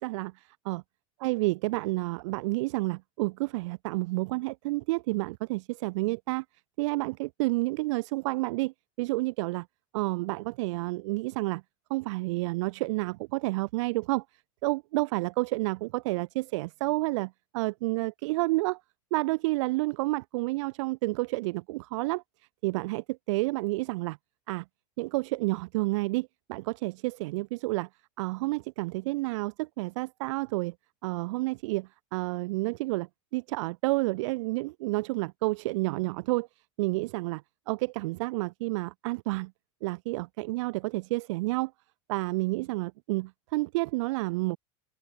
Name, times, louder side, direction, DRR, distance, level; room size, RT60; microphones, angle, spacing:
voice 1, 0.0-0.8 1.2-6.4 6.8-9.7 9.9-11.6 11.9-14.2 14.6-18.8 19.1-22.2 22.6-24.2 24.5-24.6 25.0-27.9 28.2-30.7 31.0-36.5 36.8-37.4 37.7-39.5 39.8-41.7 42.1-44.6, right 22 dB, 70° right, 0.6 m, -30 dB
supercardioid pair, 160°, 16 cm